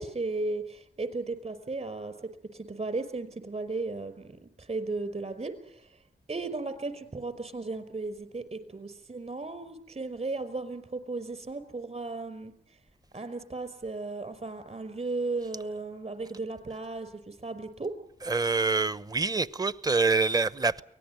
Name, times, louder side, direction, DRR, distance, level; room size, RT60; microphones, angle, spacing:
voice 1, 0.0-6.0 6.3-12.8 13.1-18.0, right 3 dB, 40° right, 5.0 m, -35 dB
voice 2, 18.3-20.8, right 4 dB, 20° right, 0.9 m, -26 dB
24.0 x 19.0 x 9.5 m
cardioid pair, 65°, 17 cm